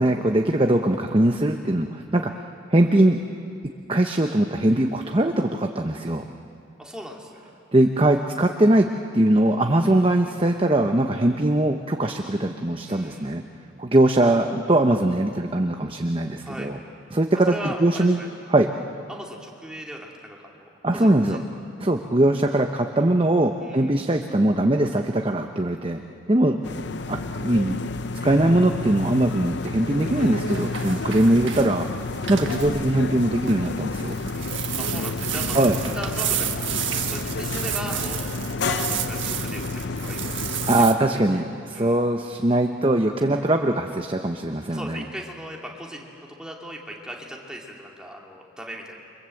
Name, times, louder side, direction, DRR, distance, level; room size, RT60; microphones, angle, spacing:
voice 1, 0.0-2.4 2.7-3.2 3.9-6.3 7.7-8.9 9.1-13.4 13.8-16.8 17.1-18.2 18.5-18.7 20.8-21.4 21.8-26.0 26.3-26.6 27.1-27.8 28.2-31.9 32.3-34.1 35.5-35.8 40.7-45.0, right 1 dB, 25° right, 4 dB, 0.9 m, -21 dB
voice 2, 6.8-7.5 9.9-10.0 12.9-13.4 16.4-16.7 17.5-18.3 19.1-21.4 23.5-23.9 30.1-30.4 34.3-35.7 35.9-41.0 41.3-41.4 41.7-42.0 44.7-49.1, equal, 5° right, -1 dB, 2.7 m, -38 dB
sound 1, 26.6-40.8, left 3 dB, 55° left, 0.7 m, -30 dB
sound 2, 30.5-40.9, right 10 dB, 65° right, 1.5 m, -32 dB
29.0 x 24.5 x 7.8 m, 2.5 s
head